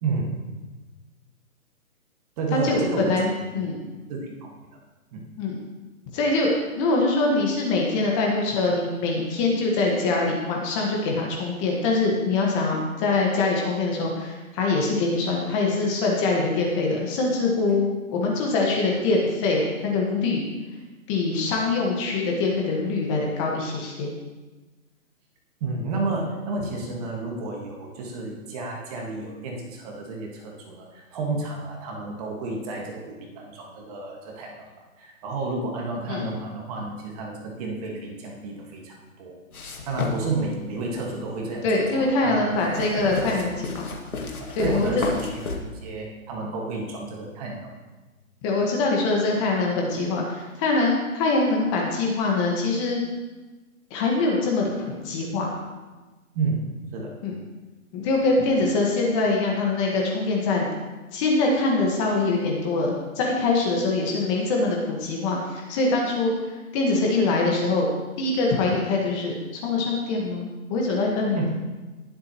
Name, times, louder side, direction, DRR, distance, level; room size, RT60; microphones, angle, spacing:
voice 1, 0.0-0.4 2.4-3.1 3.5-3.7 4.1-4.5 5.1-5.2 25.6-34.6 35.0-39.4 39.8-41.7 41.9-42.3 42.8-43.4 43.8-43.9 44.4-47.7 56.3-56.6 56.9-57.2 71.3-71.5, right 3 dB, 25° right, -1 dB, 1.7 m, -31 dB
voice 2, 2.5-3.3 3.5-3.8 5.4-5.6 6.1-20.5 21.1-24.1 36.1-36.2 41.6-43.5 43.8-43.9 44.2-45.1 48.4-53.0 53.9-55.5 57.2-57.3 57.9-60.8 61.1-67.9 68.2-69.4 69.6-71.5, left 3 dB, 20° left, -1 dB, 1.5 m, -24 dB
sound 1, 39.5-45.6, left 3 dB, 85° left, 2.2 m, -33 dB
20.0 x 7.8 x 3.0 m, 1.2 s
hypercardioid pair, 150°, 43 cm